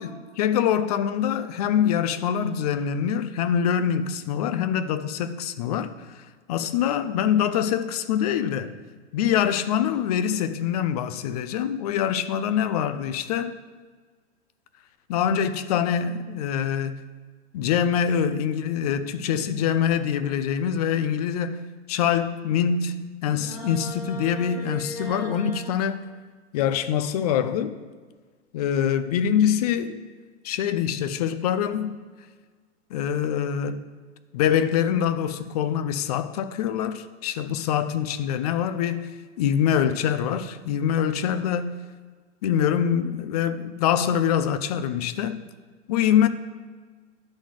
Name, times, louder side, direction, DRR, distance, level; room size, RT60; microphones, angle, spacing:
voice 1, 0.4-6.2 6.5-8.8 9.1-13.6 15.1-17.0 17.5-26.0 26.5-27.8 28.5-30.0 30.4-32.0 32.9-33.9 34.3-41.8 42.4-45.5 45.9-46.3, left 9 dB, 35° left, 0.4 m, -24 dB
sound 1, 23.3-25.7, right 2 dB, 5° right, 3.2 m, -38 dB
11.0 x 4.2 x 6.3 m
hypercardioid pair, 130°, 36 cm